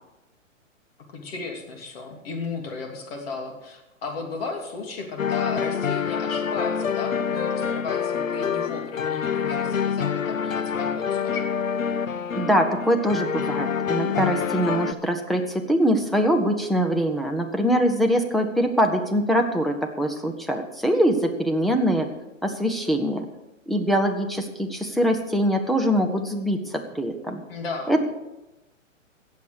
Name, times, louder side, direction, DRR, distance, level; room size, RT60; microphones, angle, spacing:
voice 1, 1.1-11.4 27.5-28.0, left 4 dB, 50° left, 2 dB, 3.0 m, -35 dB
sound 1, 5.2-14.9, left 7 dB, 80° left, 0.8 m, -26 dB
voice 2, 12.4-22.1 22.4-23.3 23.7-27.4 27.9-28.0, equal, ahead, 3 dB, 0.6 m, -23 dB
17.0 x 7.3 x 6.3 m, 0.99 s
figure-of-eight pair, 125°, 39 cm